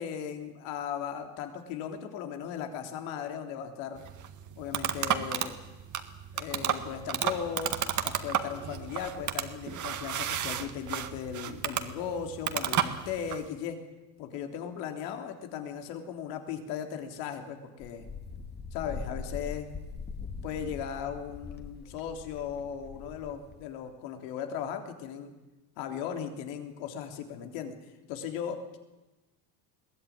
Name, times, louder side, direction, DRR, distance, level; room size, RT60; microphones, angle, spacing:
voice 1, 0.0-4.0 4.6-5.6 6.3-7.7 8.0-13.8 14.2-18.1 18.7-19.7 20.4-25.3 25.8-27.8 28.1-28.8, left 8 dB, 80° left, 5 dB, 3.6 m, -37 dB
sound 1, 4.0-13.5, right 9 dB, 40° right, 1.8 m, -32 dB
Wind, 17.8-23.7, left 5 dB, 20° left, 2.1 m, -42 dB
22.0 x 16.5 x 9.5 m, 1.1 s
cardioid pair, 130°, 46 cm